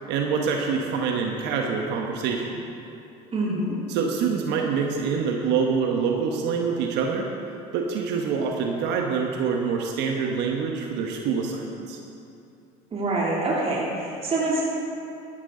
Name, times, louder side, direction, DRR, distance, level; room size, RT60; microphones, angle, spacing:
voice 1, 0.1-2.6 3.9-7.3 7.7-12.0, right 5 dB, 70° right, 1 dB, 1.2 m, -26 dB
voice 2, 3.3-3.8 12.9-14.6, right 2 dB, 35° right, -5 dB, 2.9 m, -25 dB
13.0 x 12.5 x 3.9 m, 2.7 s
supercardioid pair, 80°, 19 cm